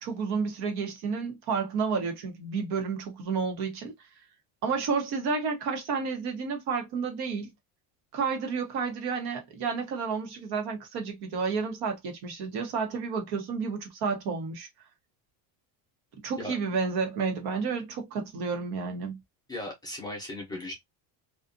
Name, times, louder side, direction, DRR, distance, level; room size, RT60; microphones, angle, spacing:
voice 1, 0.0-3.9 4.6-7.5 8.1-14.7 16.2-19.2, right 5 dB, 60° right, 1.1 m, -31 dB
voice 2, 19.5-20.7, left 1 dB, 10° left, 0.7 m, -37 dB
2.5 x 2.4 x 2.5 m
cardioid pair, 165°, 43 cm